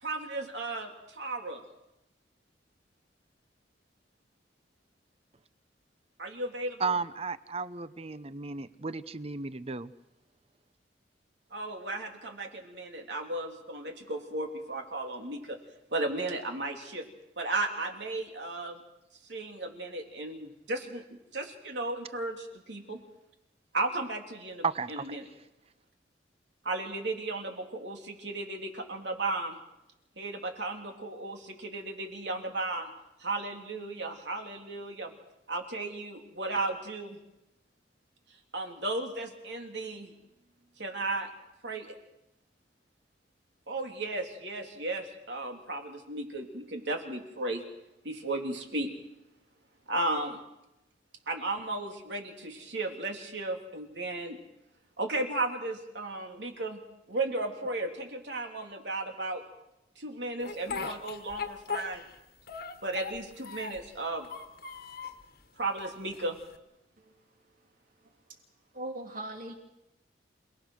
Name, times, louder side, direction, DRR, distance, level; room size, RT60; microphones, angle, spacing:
voice 1, 0.0-1.6 6.2-6.9 11.5-15.6 15.9-17.1 17.4-18.8 19.3-21.0 21.3-23.0 23.7-25.2 26.6-29.6 30.2-32.9 33.2-35.1 35.5-37.2 38.5-40.1 40.8-41.3 41.6-41.9 43.7-47.6 48.0-48.9 49.9-50.4 51.3-54.4 55.0-56.8 57.1-59.4 60.0-62.0 62.8-64.3 65.6-66.4, right 2 dB, 75° right, 3.2 m, -35 dB
voice 2, 6.8-9.9 24.6-25.2, right 5 dB, 35° right, 0.7 m, -33 dB
Speech, 60.4-62.2 62.5-63.9 64.2-65.2 65.8-66.6, left 5 dB, 55° left, 1.5 m, -39 dB
voice 3, 68.0-68.4 68.7-69.5, right 1 dB, 50° right, 3.3 m, -41 dB
27.5 x 19.0 x 6.4 m
head